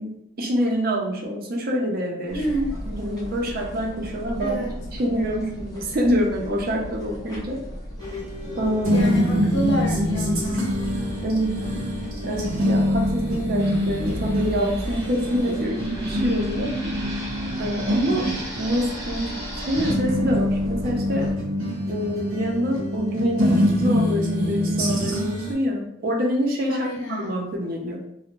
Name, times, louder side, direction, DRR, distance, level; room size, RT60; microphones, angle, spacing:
voice 1, 0.0-2.4 2.9-7.6 8.5-9.1 11.2-11.6 12.2-16.7 17.6-18.3 18.6-21.3 21.9-28.0, equal, 45° right, 1 dB, 0.4 m, -26 dB
voice 2, 2.3-2.6 4.4-4.8 8.9-10.7 16.5-16.9 26.7-27.4, right 1 dB, 60° left, -1 dB, 0.6 m, -28 dB
sound 1, 2.3-21.3, equal, 20° left, 0.5 m, -36 dB
sound 2, 8.0-25.5, equal, 80° right, 0.7 m, -25 dB
Fixed-wing aircraft airplane, 13.6-19.9, right 1 dB, 15° right, 0.7 m, -38 dB
2.5 x 2.0 x 2.9 m, 0.79 s
head